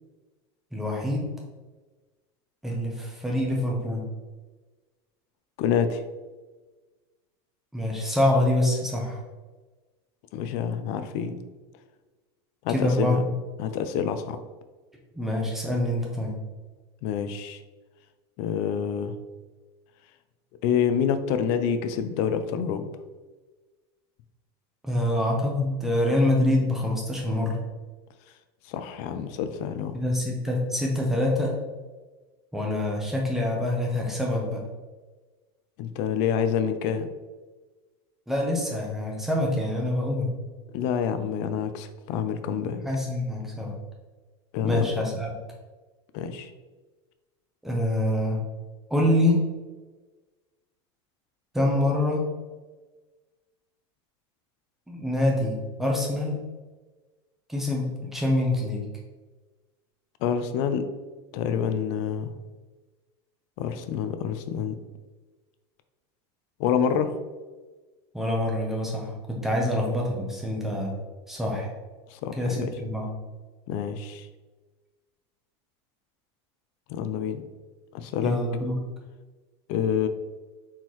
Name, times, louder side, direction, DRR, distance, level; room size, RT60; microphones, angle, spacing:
voice 1, 0.7-1.3 2.6-4.0 7.7-9.2 12.7-13.2 15.1-16.4 24.8-27.6 29.9-31.5 32.5-34.6 38.3-40.3 42.8-43.8 44.6-45.3 47.6-48.4 48.9-49.4 51.5-52.3 54.9-56.4 57.5-58.8 68.1-70.9 71.3-71.7 72.4-73.1 78.2-78.7, left 1 dB, ahead, -2 dB, 0.7 m, -25 dB
voice 2, 5.6-6.0 10.3-11.4 12.6-13.2 13.6-14.4 17.0-17.6 18.4-19.1 20.6-22.9 28.7-30.0 35.8-37.1 40.7-42.8 44.5-44.9 46.1-46.5 60.2-60.9 61.3-62.3 63.6-64.8 66.6-67.1 72.1-72.7 73.7-74.3 76.9-77.4 77.9-78.3 79.7-80.1, left 8 dB, 50° left, 9 dB, 0.4 m, -27 dB
4.3 x 3.7 x 3.0 m, 1.3 s
supercardioid pair, 155°, 14 cm